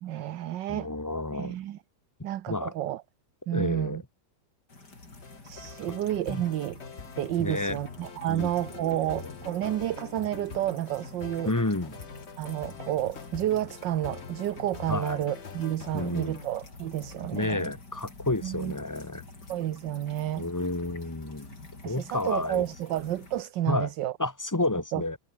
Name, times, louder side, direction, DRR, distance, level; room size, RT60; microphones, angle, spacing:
voice 1, 0.0-0.9 1.3-1.8 2.2-3.0 3.5-4.0 5.4-6.8 7.2-11.5 12.4-17.7 18.4-18.7 19.5-20.4 21.8-24.1 24.9-25.0, right 13 dB, 65° right, 1.5 m, -30 dB
voice 2, 0.7-1.6 2.5-2.7 3.5-4.0 6.3-6.4 7.4-7.8 8.3-8.5 8.8-9.3 11.4-11.9 14.9-15.2 15.9-16.4 17.3-19.2 20.4-21.6 21.8-22.6 23.7-23.9 24.2-25.2, left 2 dB, 10° left, 1.1 m, -30 dB
sound 1, 4.7-23.4, left 3 dB, 55° left, 5.7 m, -48 dB
sound 2, 5.2-16.5, left 5 dB, 35° left, 1.5 m, -44 dB
omnidirectional pair, 2.2 m